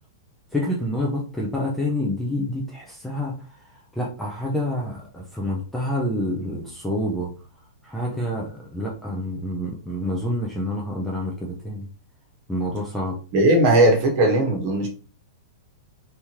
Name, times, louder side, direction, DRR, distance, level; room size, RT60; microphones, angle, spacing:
voice 1, 0.5-3.3 3.9-7.3 7.8-11.8 12.5-13.2, left 1 dB, 5° left, -3 dB, 0.5 m, -27 dB
voice 2, 13.3-14.9, right 1 dB, 35° right, 2 dB, 1.0 m, -18 dB
3.5 x 3.0 x 2.8 m, 0.38 s
supercardioid pair, 175°, 2 cm